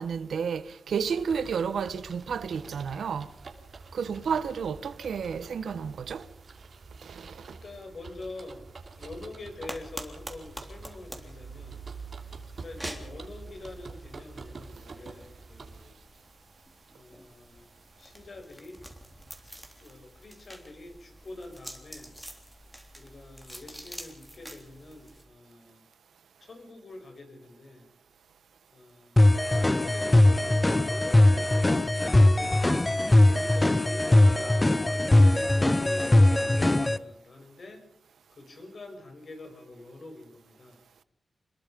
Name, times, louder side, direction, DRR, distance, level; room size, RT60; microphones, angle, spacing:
voice 1, 0.0-3.3 3.9-6.3 7.0-7.6, right 6 dB, 85° right, 1.2 m, -31 dB
sound 1, 0.9-15.9, right 4 dB, 55° right, 3.0 m, -46 dB
voice 2, 7.1-8.7 9.0-11.8 12.6-16.0 16.9-17.7 18.0-18.8 19.8-22.2 22.9-25.8 26.4-27.9 28.7-32.7 33.3-37.9 38.3-40.8, left 2 dB, 55° left, 6.6 m, -45 dB
sound 2, 9.7-25.3, equal, ahead, 3.6 m, -47 dB
sound 3, 29.2-37.0, left 1 dB, 20° left, 1.0 m, -20 dB
26.5 x 21.5 x 5.3 m
cardioid pair, 80°, 0 cm